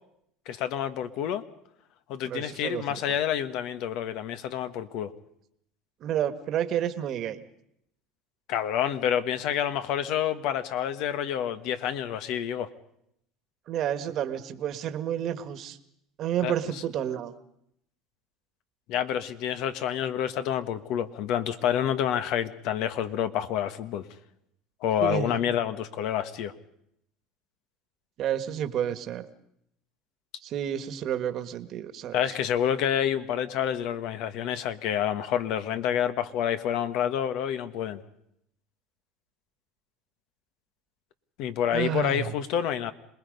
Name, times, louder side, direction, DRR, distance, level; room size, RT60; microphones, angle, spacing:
voice 1, 0.5-1.4 2.1-5.1 8.5-12.7 16.4-16.8 18.9-24.1 24.8-26.5 32.1-38.0 41.4-42.9, left 9 dB, 65° left, 11 dB, 1.3 m, -28 dB
voice 2, 2.2-2.8 6.0-7.4 13.7-15.8 16.2-17.3 25.0-25.3 28.2-29.2 30.4-32.2 41.7-42.3, right 10 dB, 50° right, 10 dB, 1.5 m, -30 dB
27.0 x 20.0 x 5.4 m, 0.75 s
supercardioid pair, 115°, 0 cm